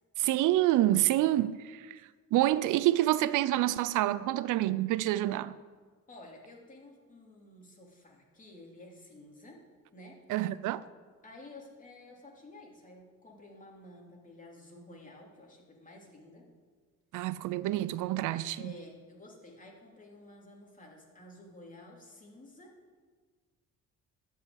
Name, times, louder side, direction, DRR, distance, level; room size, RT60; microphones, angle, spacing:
voice 1, 0.2-2.0 2.3-5.5 10.3-10.8 17.1-18.7, right 14 dB, 85° right, 0.5 m, -27 dB
voice 2, 6.1-9.6 9.9-10.2 11.2-16.5 18.6-22.7, left 1 dB, 25° left, 2.9 m, -52 dB
12.5 x 5.6 x 8.6 m
cardioid pair, 90°, 30 cm